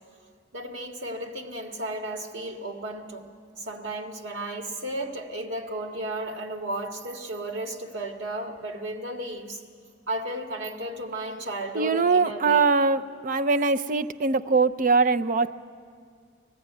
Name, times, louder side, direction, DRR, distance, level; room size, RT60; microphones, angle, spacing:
voice 1, 0.5-3.3 3.6-9.6 10.1-12.6, right 1 dB, 85° right, 3 dB, 1.7 m, -34 dB
voice 2, 11.7-15.5, right 4 dB, 45° right, 11 dB, 0.5 m, -22 dB
19.5 x 14.5 x 9.2 m, 2.1 s
head